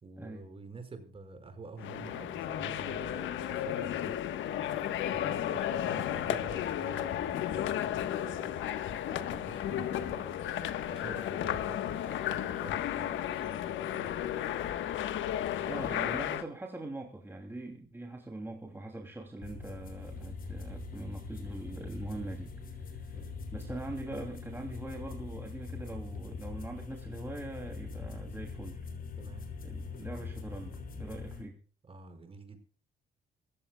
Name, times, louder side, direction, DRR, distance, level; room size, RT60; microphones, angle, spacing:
voice 1, 0.0-4.2 5.0-8.6 9.1-14.1 15.5-15.9 23.1-23.4 29.2-29.5 31.9-32.6, right 3 dB, 30° right, 7 dB, 5.5 m, -48 dB
sound 1, 1.8-16.4, left 11 dB, 85° left, 1.4 m, -33 dB
voice 2, 15.7-23.2 23.5-28.8 29.6-31.6, right 2 dB, 10° right, 2 dB, 2.9 m, -42 dB
sound 2, 19.4-31.4, left 4 dB, 50° left, 6.0 m, -42 dB
26.0 x 15.5 x 2.3 m, 0.40 s
cardioid pair, 125°, 19 cm